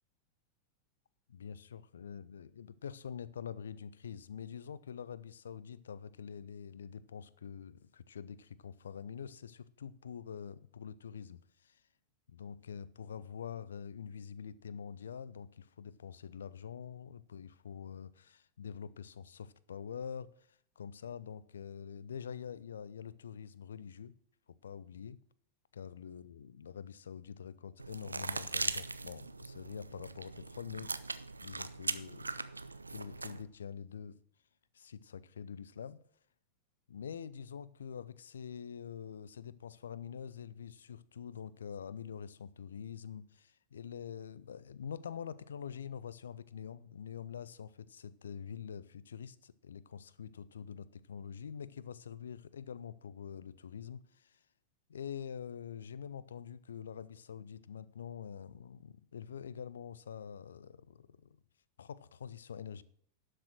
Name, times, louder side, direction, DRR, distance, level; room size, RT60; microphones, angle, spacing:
voice 1, 1.3-11.8 12.3-24.1 24.5-25.2 25.7-30.9 31.4-34.2 34.7-36.0 36.9-54.4 54.9-61.4 61.8-62.8, left 7 dB, 65° left, 0.5 m, -46 dB
sound 1, 27.8-33.4, right 3 dB, 80° right, 0.5 m, -40 dB
12.0 x 6.7 x 6.2 m
figure-of-eight pair, 90°, 0 cm